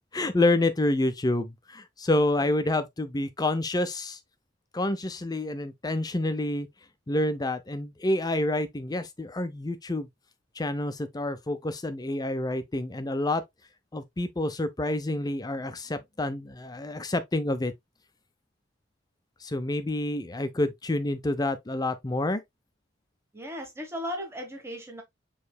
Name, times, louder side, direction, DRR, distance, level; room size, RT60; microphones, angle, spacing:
voice 1, 0.1-4.2 4.7-6.7 7.1-10.1 10.6-13.4 13.9-17.7 19.4-22.4, left 2 dB, 20° left, 0.6 m, -28 dB
voice 2, 23.3-25.0, equal, 15° right, 1.2 m, -36 dB
6.7 x 3.2 x 2.2 m
head